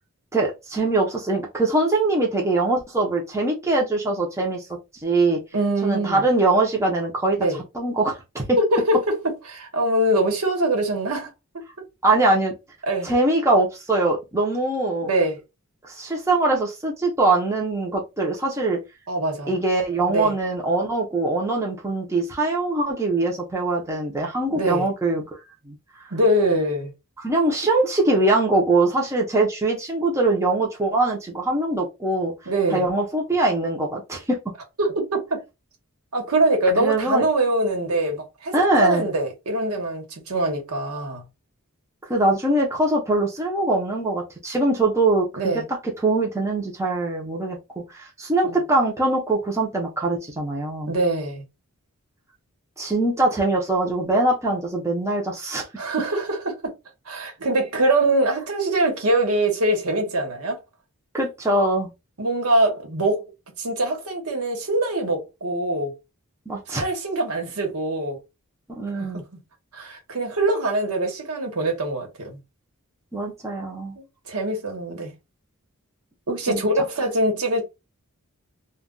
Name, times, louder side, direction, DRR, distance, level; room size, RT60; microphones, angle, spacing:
voice 1, 0.3-4.6 5.0-5.4 5.8-7.4 7.7-8.6 12.0-12.5 13.0-15.1 15.8-18.8 19.5-25.4 25.7-25.8 27.2-32.3 32.7-34.4 36.8-37.3 38.5-39.1 42.1-47.6 47.9-50.9 52.8-55.7 61.1-61.9 66.5-66.8 68.8-69.2 73.1-74.0 76.5-76.6, right 2 dB, 15° right, 0.6 m, -22 dB
voice 2, 5.5-6.2 7.4-7.6 8.6-9.1 9.5-11.3 11.5-11.6 12.9-13.1 15.0-15.4 19.1-19.5 20.1-20.3 24.5-24.9 26.1-26.9 32.5-32.8 34.8-35.4 36.1-41.2 45.4-45.7 48.4-48.6 50.9-51.4 55.8-56.7 57.1-60.6 62.2-63.3 63.6-65.9 66.7-68.2 68.9-69.4 69.7-72.4 74.0-75.1 76.3-77.6, right 1 dB, 75° right, 1.1 m, -23 dB
2.2 x 2.2 x 3.7 m
head